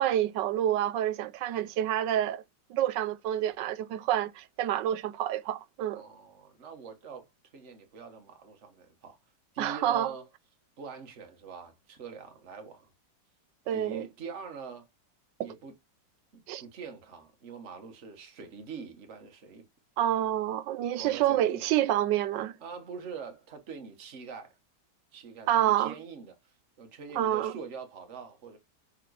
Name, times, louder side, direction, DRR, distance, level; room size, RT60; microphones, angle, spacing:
voice 1, 0.0-2.4 2.7-6.0 9.6-10.1 13.7-14.1 16.5-16.6 20.0-22.6 25.5-25.9 27.1-27.5, right 12 dB, 90° right, 1.3 m, -28 dB
voice 2, 5.9-9.2 9.5-10.2 10.8-12.9 13.7-14.9 15.4-15.7 16.3-19.6 21.0-21.6 22.6-24.5 25.1-28.6, right 5 dB, 45° right, 1.4 m, -44 dB
6.6 x 3.7 x 4.6 m
omnidirectional pair, 1.9 m